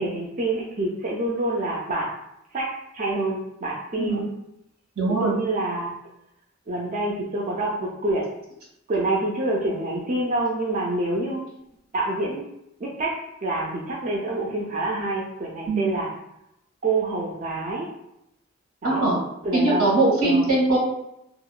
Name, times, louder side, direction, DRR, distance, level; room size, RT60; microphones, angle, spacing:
voice 1, 0.0-2.1 2.5-4.3 5.1-5.9 6.7-8.2 8.9-11.5 11.9-12.5 12.8-13.1 13.4-16.1 16.8-17.9 18.8-19.0 19.4-19.9 20.2-20.5, right 2 dB, 40° right, -3 dB, 0.3 m, -27 dB
voice 2, 5.0-5.3 15.7-15.9 18.8-19.2 19.5-20.8, right 2 dB, 90° right, -4 dB, 1.3 m, -21 dB
2.8 x 2.1 x 2.3 m, 0.82 s
head